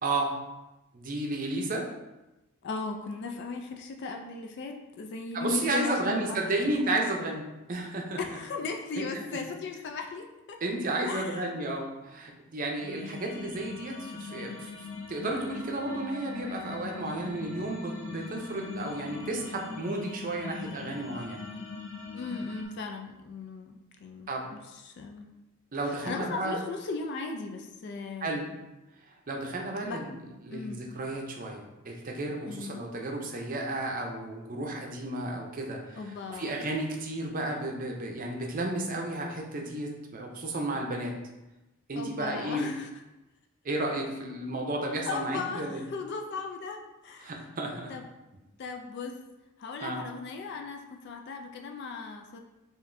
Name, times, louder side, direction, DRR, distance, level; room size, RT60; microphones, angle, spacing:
voice 1, 0.0-0.3 0.9-1.9 5.3-8.2 9.0-9.1 10.6-14.8 15.1-21.4 24.3-24.5 25.7-26.6 28.2-28.5 29.3-36.0 36.3-41.1 41.9-42.7 43.6-45.8 47.2-47.9 49.8-50.0, right 2 dB, 40° right, 1 dB, 0.6 m, -32 dB
voice 2, 2.6-6.7 8.2-10.6 11.0-11.5 22.1-25.3 26.0-28.4 29.8-30.0 30.5-30.8 32.4-32.8 35.9-36.6 42.0-42.9 45.1-47.4 47.9-48.0 48.6-49.2 49.6-52.4, left 4 dB, 50° left, 3 dB, 0.3 m, -37 dB
sound 1, 12.8-22.7, left 4 dB, 80° left, 0.8 m, -41 dB
4.8 x 2.6 x 2.6 m, 1.0 s
head